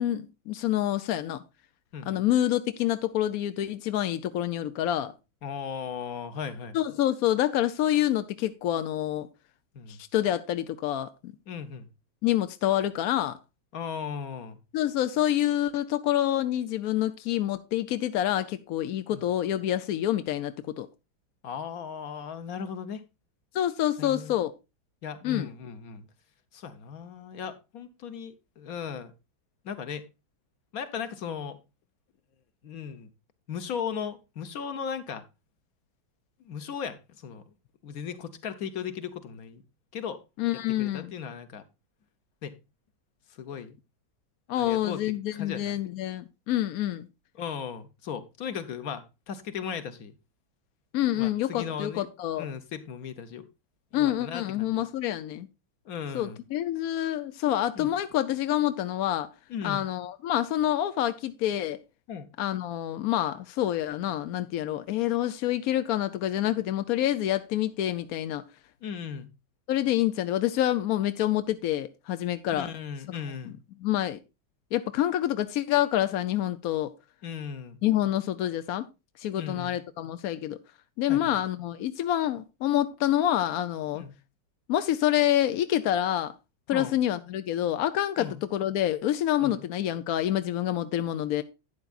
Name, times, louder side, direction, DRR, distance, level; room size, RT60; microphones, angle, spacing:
voice 1, 0.0-1.4 2.1-5.1 6.7-9.3 9.9-11.3 12.2-13.4 14.7-20.9 23.5-24.5 25.2-25.5 40.4-41.1 44.5-47.1 50.9-52.5 53.9-55.5 56.1-59.3 59.6-61.8 62.4-68.4 69.7-72.7 73.8-74.2 74.7-76.9 77.8-78.9 79.2-80.6 81.0-84.0 84.7-86.3 86.7-91.4, left 12 dB, 70° left, 0.8 m, -27 dB
voice 2, 1.9-2.2 5.4-6.8 9.7-10.0 11.5-11.9 13.7-14.6 19.1-19.2 21.4-23.0 24.0-24.4 25.0-26.1 26.5-29.1 29.6-30.0 30.7-31.6 32.6-33.1 33.5-35.2 36.4-37.4 37.8-39.6 39.9-40.2 40.8-41.6 42.4-42.5 43.4-43.8 44.6-45.0 45.3-45.7 47.3-50.1 51.1-52.0 52.4-53.5 53.9-54.8 55.8-56.4 57.7-57.9 59.5-59.8 62.1-62.3 68.8-69.3 72.5-73.6 77.2-77.8 79.3-79.8 81.1-81.4 83.9-84.1 86.7-87.0 88.2-88.4 89.4-89.6, left 7 dB, 55° left, 1.3 m, -37 dB
12.0 x 9.1 x 2.4 m
omnidirectional pair, 2.1 m